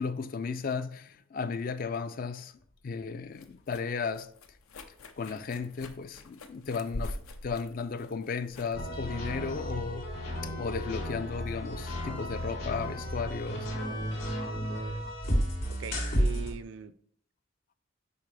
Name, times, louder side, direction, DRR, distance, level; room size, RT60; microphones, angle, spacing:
voice 1, 0.0-4.6 5.2-10.2 10.4-13.7, left 5 dB, 40° left, 0.3 m, -35 dB
sound 1, 2.6-10.4, left 1 dB, 90° left, 0.7 m, -45 dB
sound 2, 8.7-16.5, equal, 65° left, 2.9 m, -33 dB
voice 2, 13.8-14.2 14.7-15.1 15.7-16.9, right 6 dB, 60° right, 0.4 m, -42 dB
6.9 x 5.1 x 3.3 m
head